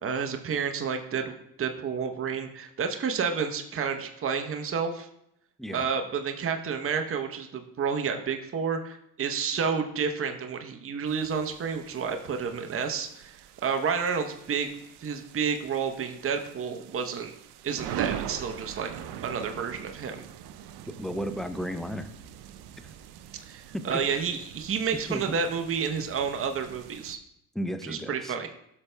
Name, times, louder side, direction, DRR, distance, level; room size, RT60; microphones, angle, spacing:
voice 1, 0.0-5.1 5.7-14.7 15.0-17.3 17.6-18.9 19.2-20.2 23.5-27.2 27.8-28.5, right 6 dB, 30° right, 5 dB, 0.8 m, -30 dB
sound 1, 11.1-27.2, right 10 dB, 65° right, 0.6 m, -42 dB
voice 2, 20.9-22.1 23.7-23.8 24.1-24.2 25.1-25.3 27.5-28.3, equal, ahead, 9 dB, 0.6 m, -34 dB
12.0 x 6.6 x 2.2 m, 0.77 s
supercardioid pair, 65°, 42 cm